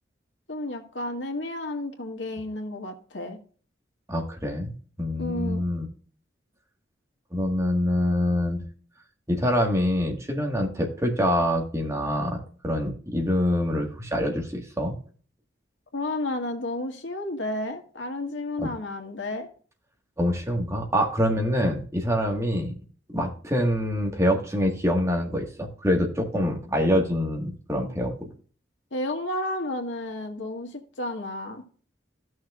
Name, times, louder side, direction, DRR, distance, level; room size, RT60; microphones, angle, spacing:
voice 1, 0.5-3.4 5.2-5.6 15.9-19.5 28.9-31.6, left 1 dB, 90° left, 3 dB, 1.8 m, -32 dB
voice 2, 4.1-5.9 7.3-8.6 9.3-15.0 18.6-18.7 20.2-22.7 23.1-28.1, equal, 15° right, 1 dB, 1.7 m, -25 dB
14.5 x 6.3 x 2.5 m, 0.42 s
head